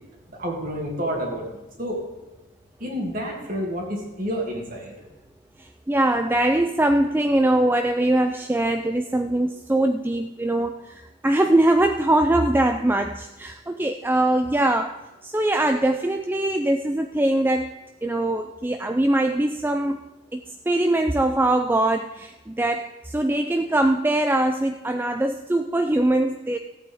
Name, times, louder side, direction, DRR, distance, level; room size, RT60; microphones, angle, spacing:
voice 1, 0.3-1.5 1.8-2.0 2.8-4.9, equal, 40° right, 0 dB, 2.5 m, -29 dB
voice 2, 5.6-20.0 20.3-26.6, right 1 dB, 10° right, 6 dB, 0.3 m, -22 dB
16.5 x 8.6 x 3.6 m, 1.1 s
head